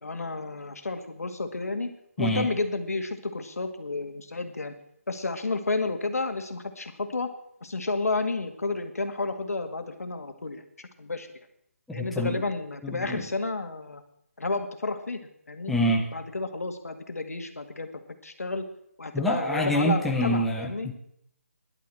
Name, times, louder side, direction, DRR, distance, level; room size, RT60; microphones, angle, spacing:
voice 1, 0.0-1.9 2.2-4.7 5.1-7.3 7.6-11.3 11.9-14.0 14.4-15.7 16.1-18.6 19.0-20.9, left 3 dB, 85° left, 7 dB, 2.1 m, -31 dB
voice 2, 11.9-12.4 12.8-13.2 15.7-16.1 19.1-20.9, equal, ahead, -2 dB, 0.4 m, -26 dB
11.0 x 9.5 x 7.8 m, 0.70 s
hypercardioid pair, 175°, 8 cm